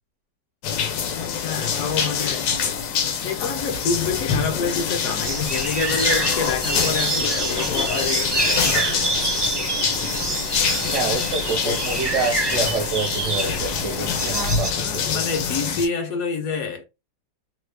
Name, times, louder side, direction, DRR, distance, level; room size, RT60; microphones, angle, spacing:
sound 1, 0.6-15.9, left 7 dB, 90° left, 1.4 m, -26 dB
voice 1, 1.4-2.5 3.0-9.4 11.6-11.8 14.6-16.8, left 5 dB, 65° left, 0.9 m, -28 dB
sound 2, 5.2-14.7, right 2 dB, 30° right, 0.4 m, -26 dB
voice 2, 10.9-14.7, right 4 dB, 80° right, 0.6 m, -27 dB
3.2 x 2.2 x 3.2 m
omnidirectional pair, 1.9 m